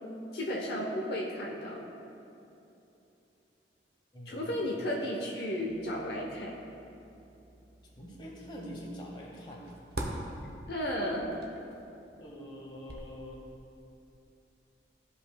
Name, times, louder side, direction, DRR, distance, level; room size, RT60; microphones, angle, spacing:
voice 1, 0.3-1.9 4.3-6.5 10.7-11.2, equal, 65° left, -2 dB, 0.8 m, -33 dB
voice 2, 4.1-4.9 8.0-9.6 12.2-13.4, equal, 25° left, -2 dB, 1.1 m, -45 dB
sound 1, 5.6-13.5, right 1 dB, 60° right, 0.8 m, -45 dB
13.5 x 5.3 x 2.2 m, 2.9 s
head